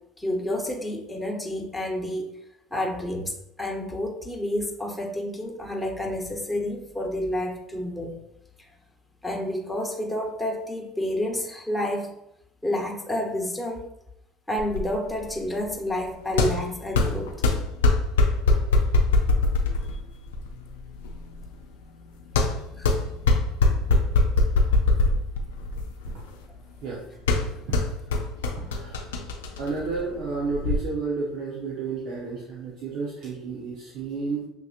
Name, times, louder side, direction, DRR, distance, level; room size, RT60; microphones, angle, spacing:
voice 1, 0.2-2.3 2.7-8.1 8.6-8.7 9.2-12.1 12.6-13.9 14.5-17.3 22.8-22.9 27.4-27.5 29.4-29.5, left 1 dB, 5° left, -1 dB, 1.1 m, -29 dB
sound 1, 14.6-30.8, left 2 dB, 90° left, 0.5 m, -24 dB
voice 2, 28.7-29.0 29.6-34.4, right 4 dB, 65° right, -5 dB, 0.9 m, -31 dB
6.3 x 2.9 x 2.5 m, 0.80 s
hypercardioid pair, 70°, 0 cm